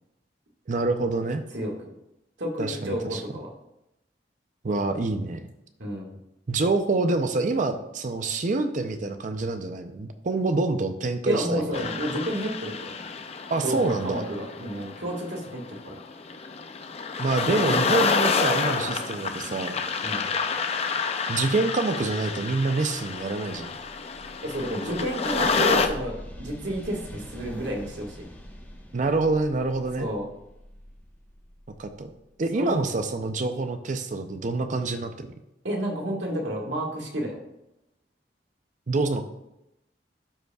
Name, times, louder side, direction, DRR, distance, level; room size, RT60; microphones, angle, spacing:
voice 1, 0.7-1.4 2.6-3.2 4.6-5.4 6.5-12.0 13.5-14.2 17.2-19.8 21.3-23.7 28.9-30.1 31.8-32.1 32.4-35.3 38.9-39.3, right 3 dB, 45° right, 8 dB, 0.5 m, -26 dB
voice 2, 1.5-1.9 2.4-3.5 5.8-6.2 11.2-12.9 13.6-16.0 20.0-20.3 24.4-28.3 30.0-30.3 32.5-32.8 35.6-37.4, equal, 85° right, -1 dB, 1.7 m, -31 dB
sound 1, 11.7-25.9, left 5 dB, 35° left, 0.5 m, -28 dB
sound 2, 23.7-33.4, equal, 10° left, 0.9 m, -45 dB
12.5 x 5.1 x 2.3 m, 0.87 s
head